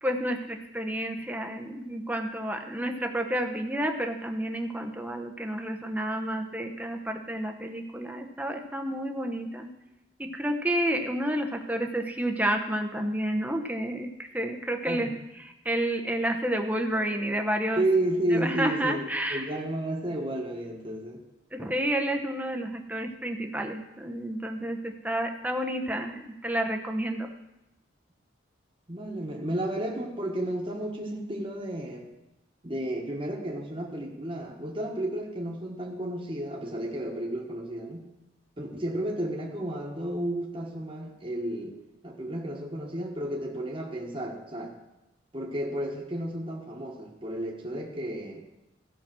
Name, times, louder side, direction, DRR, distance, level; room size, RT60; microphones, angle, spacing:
voice 1, 0.0-9.7 10.2-15.1 15.6-17.8 18.3-19.4 21.5-27.3, right 1 dB, 10° right, 4 dB, 0.8 m, -30 dB
voice 2, 14.8-15.1 17.8-21.2 28.9-32.1 32.6-38.0 38.6-41.8 42.0-44.7 45.3-48.4, right 1 dB, 25° right, 0 dB, 1.3 m, -32 dB
15.0 x 5.9 x 6.1 m, 0.93 s
head